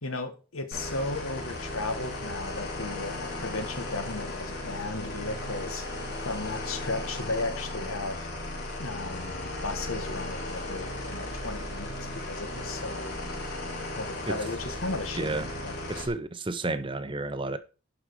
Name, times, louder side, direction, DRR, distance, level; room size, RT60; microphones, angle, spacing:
voice 1, 0.0-5.9 6.2-8.3 8.8-13.2 13.9-16.1, left 2 dB, 85° left, 1.7 m, -35 dB
sound 1, 0.7-16.1, left 2 dB, 50° left, 3.4 m, -36 dB
voice 2, 15.2-15.5 15.9-17.6, right 2 dB, 25° right, 0.7 m, -31 dB
11.0 x 5.1 x 4.9 m
head